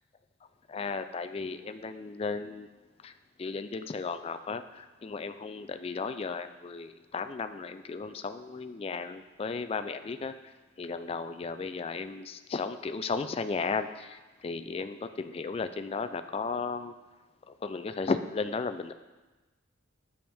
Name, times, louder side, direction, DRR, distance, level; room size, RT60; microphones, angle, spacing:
voice 1, 0.7-2.7 3.0-3.1 3.4-10.5 10.8-16.9 17.5-18.9, left 4 dB, 30° left, 9 dB, 0.3 m, -35 dB
10.5 x 7.0 x 3.4 m, 1.2 s
head